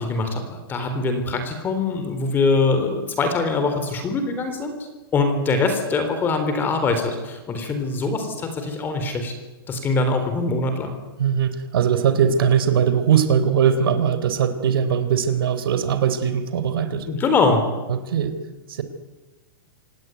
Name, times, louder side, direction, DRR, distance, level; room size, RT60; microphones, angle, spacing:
voice 1, 0.0-4.7 5.1-9.3 9.7-11.0 17.1-17.6, left 3 dB, 15° left, 7 dB, 3.9 m, -23 dB
voice 2, 11.2-17.1 17.9-18.4 18.7-18.8, right 8 dB, 70° right, 11 dB, 3.6 m, -20 dB
26.5 x 18.5 x 9.6 m, 1.2 s
hypercardioid pair, 155°, 12 cm